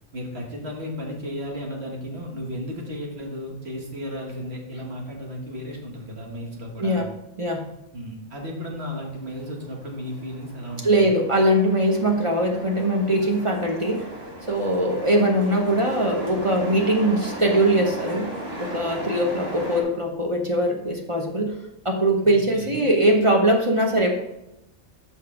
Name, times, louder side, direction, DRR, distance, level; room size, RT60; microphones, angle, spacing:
voice 1, 0.1-7.1 7.9-11.1 22.2-22.9, equal, 60° right, 0 dB, 1.9 m, -34 dB
sound 1, 8.9-19.8, right 1 dB, 75° right, 2.2 m, -37 dB
voice 2, 10.8-14.1 14.5-18.3 18.6-21.5 21.8-24.2, right 1 dB, 30° right, 1 dB, 0.9 m, -21 dB
6.4 x 5.3 x 4.8 m, 0.88 s
omnidirectional pair, 1.2 m